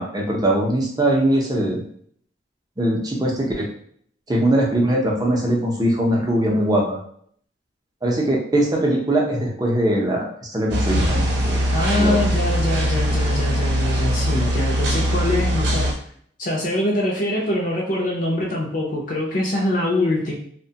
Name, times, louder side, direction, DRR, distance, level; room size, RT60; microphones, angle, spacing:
voice 1, 0.0-1.8 2.8-3.7 4.3-7.0 8.0-11.6 12.0-12.2, right 1 dB, 20° right, -1 dB, 0.6 m, -21 dB
sound 1, 10.7-15.9, equal, 65° right, 0.7 m, -21 dB
voice 2, 11.7-15.9 16.4-20.3, left 1 dB, 45° left, -3 dB, 0.5 m, -23 dB
2.9 x 2.2 x 2.7 m, 0.62 s
head